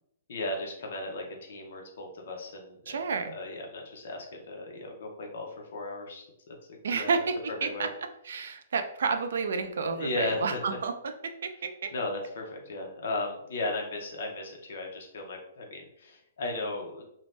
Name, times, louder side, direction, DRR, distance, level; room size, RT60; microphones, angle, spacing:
voice 1, 0.3-3.0 3.2-6.3 6.7-7.1 7.6-7.9 9.9-10.8 11.9-17.0, left 2 dB, 50° left, 1 dB, 0.6 m, -36 dB
voice 2, 2.9-3.3 6.8-7.9 8.2-11.9, right 5 dB, 60° right, 7 dB, 0.3 m, -30 dB
2.6 x 2.1 x 3.1 m, 0.76 s
hypercardioid pair, 180°, 0 cm